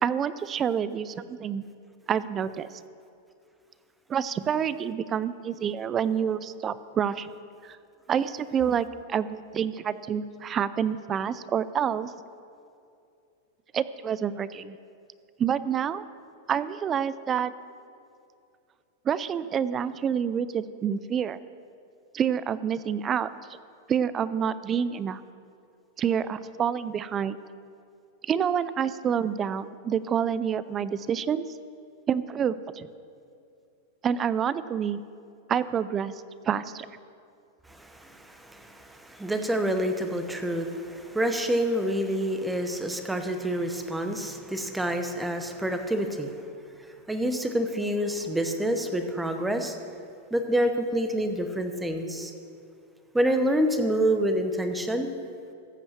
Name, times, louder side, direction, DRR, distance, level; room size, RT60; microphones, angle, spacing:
voice 1, 0.0-1.6 2.1-2.8 4.1-7.3 7.6-7.8 8.1-12.1 13.7-14.8 15.4-16.0 16.5-17.5 19.1-21.4 22.1-23.3 23.9-25.2 26.0-27.4 28.2-31.5 32.1-32.9 34.0-35.0 35.5-36.1 36.4-36.9, right 8 dB, 25° right, 16 dB, 0.4 m, -28 dB
voice 2, 37.7-46.4 47.1-49.8 50.3-52.3 53.1-55.1, right 1 dB, 5° right, 7 dB, 0.8 m, -27 dB
14.5 x 5.4 x 7.2 m, 2.5 s
supercardioid pair, 145°, 0 cm